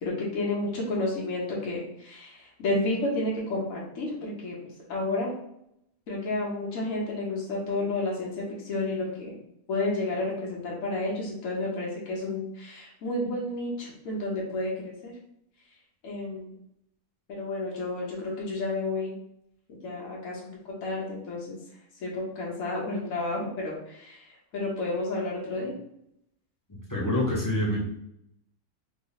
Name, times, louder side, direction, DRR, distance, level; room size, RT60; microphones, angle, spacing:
voice 1, 0.0-5.3 6.1-9.3 9.7-15.1 16.0-16.5 17.3-19.1 19.8-20.5 20.8-21.6 22.0-24.3 24.5-25.7, left 2 dB, 70° left, -4 dB, 1.2 m, -31 dB
voice 2, 26.7-27.8, left 1 dB, 30° left, -5 dB, 0.4 m, -27 dB
3.2 x 2.0 x 3.8 m, 0.76 s
omnidirectional pair, 1.5 m